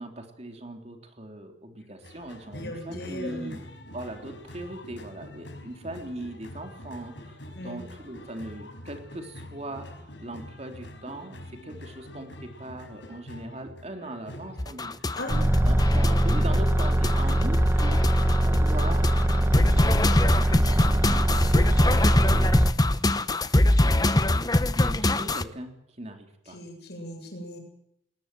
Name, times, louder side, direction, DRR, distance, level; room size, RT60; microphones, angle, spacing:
voice 1, 0.0-3.6 3.9-7.4 7.6-15.0 15.7-19.1 19.7-22.5 23.7-26.6, right 1 dB, 35° right, 4 dB, 3.6 m, -40 dB
sound 1, 2.0-20.6, left 1 dB, 85° left, 5.2 m, -45 dB
voice 2, 2.5-3.6 7.5-7.8 15.1-15.5 23.8-23.9 26.5-27.6, left 1 dB, 65° left, 4 dB, 7.5 m, -38 dB
sound 2, 14.6-25.4, left 1 dB, 20° left, 0.9 m, -24 dB
sound 3, 15.3-22.7, right 1 dB, 15° right, 1.2 m, -22 dB
20.5 x 20.0 x 7.8 m, 0.75 s
head